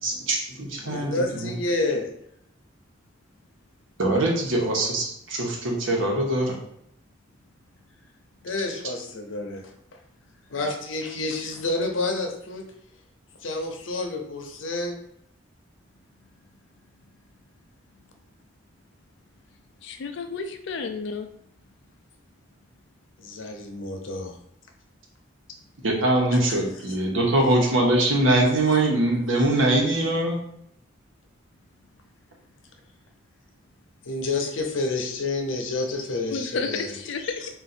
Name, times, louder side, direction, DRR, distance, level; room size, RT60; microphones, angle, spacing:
voice 1, 0.0-1.5 4.0-6.5 25.8-30.4, right 1 dB, 85° right, 0 dB, 1.0 m, -22 dB
voice 2, 0.8-2.1 8.4-9.7 10.5-12.6 13.4-15.0 23.2-24.4 26.5-26.6 34.0-37.5, left 2 dB, 85° left, 3 dB, 0.7 m, -29 dB
voice 3, 19.8-21.3 36.3-37.2, left 4 dB, 65° left, 6 dB, 0.4 m, -31 dB
3.7 x 2.5 x 4.2 m, 0.73 s
head